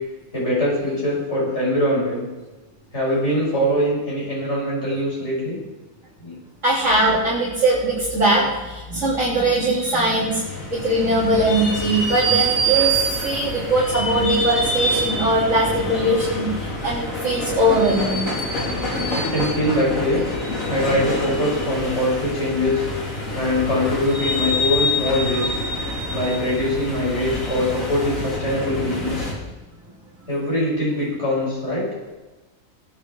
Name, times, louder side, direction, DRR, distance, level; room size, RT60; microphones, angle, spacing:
voice 1, 0.3-2.2 2.9-5.6 6.2-6.4 19.1-20.2 20.7-22.8 23.3-25.6 26.1-29.3 30.3-31.9, left 1 dB, 55° left, -5 dB, 6.8 m, -22 dB
voice 2, 6.6-18.2, right 1 dB, 60° right, -9 dB, 4.1 m, -21 dB
sound 1, 10.0-29.3, equal, 70° left, 3.4 m, -26 dB
21.5 x 8.9 x 4.8 m, 1.1 s
omnidirectional pair, 1.4 m